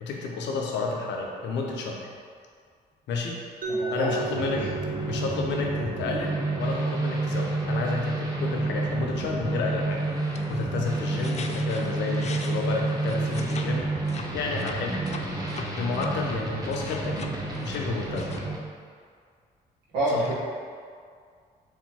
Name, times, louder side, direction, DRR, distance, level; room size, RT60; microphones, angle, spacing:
voice 1, 0.0-2.0 3.1-3.4 3.9-4.6 5.0-10.0 10.3-15.1 15.5-18.3 20.1-20.3, left 4 dB, 80° left, 0 dB, 0.7 m, -31 dB
Mallet percussion, 3.6-9.5, right 4 dB, 45° right, 0.8 m, -37 dB
voice 2, 3.7-4.2 4.6-4.7 19.9-20.3, right 1 dB, 85° right, -8 dB, 1.3 m, -27 dB
sound 1, 4.3-18.6, right 2 dB, 20° right, 1.0 m, -30 dB
sound 2, 10.1-13.7 14.0-16.1 16.5-18.4, left 5 dB, 40° left, 0.4 m, -41 dB
4.6 x 3.6 x 2.9 m, 2.1 s
supercardioid pair, 65°, 18 cm